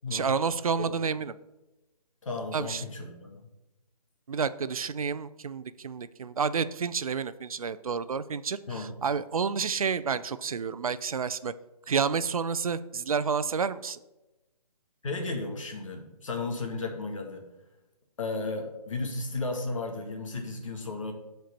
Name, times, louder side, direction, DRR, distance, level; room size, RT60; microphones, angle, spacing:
voice 1, 0.1-1.3 2.5-2.8 4.3-11.5 11.9-14.0, right 6 dB, 60° right, 14 dB, 0.5 m, -30 dB
voice 2, 2.2-3.4 8.7-8.9 15.0-17.4 18.2-21.1, left 3 dB, 55° left, 2 dB, 2.0 m, -34 dB
7.7 x 4.5 x 6.8 m, 0.99 s
hypercardioid pair, 175°, 20 cm